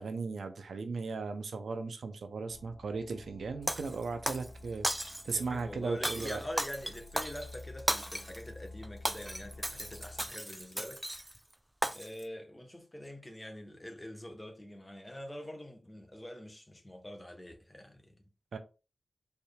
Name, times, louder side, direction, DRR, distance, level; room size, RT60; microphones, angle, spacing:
voice 1, 0.0-4.9 5.2-6.4 18.5-18.6, right 4 dB, 85° right, 0.6 m, -37 dB
sound 1, 2.5-10.3, left 2 dB, 90° left, 0.5 m, -51 dB
Shatter, 3.7-4.5 4.8-5.4 6.0-8.4 8.8-11.4 11.8-12.2, right 1 dB, 10° right, 0.4 m, -35 dB
voice 2, 5.3-11.2 11.9-18.2, left 1 dB, 20° left, 1.0 m, -45 dB
4.2 x 3.4 x 2.3 m
cardioid pair, 55°, 0 cm